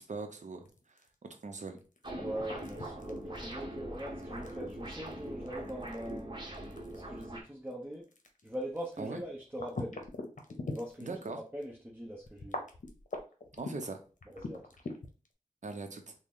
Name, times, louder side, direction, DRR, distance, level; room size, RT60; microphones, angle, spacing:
voice 1, 0.1-0.6 0.9-1.8 9.0-9.2 11.0-11.4 13.5-14.0 15.6-16.1, right 3 dB, 60° right, 5 dB, 0.7 m, -41 dB
sound 1, 0.7-11.3 11.6-11.7 12.2-15.3, left 3 dB, 65° left, 0.7 m, -43 dB
sound 2, 2.0-7.4, right 1 dB, 35° right, 1.1 m, -42 dB
voice 2, 2.1-6.4 6.9-8.0 8.4-10.0 10.7-11.2 11.5-12.6 14.3-14.6, equal, 15° right, -3 dB, 0.8 m, -41 dB
3.7 x 2.1 x 3.6 m, 0.36 s
cardioid pair, 45°, 14 cm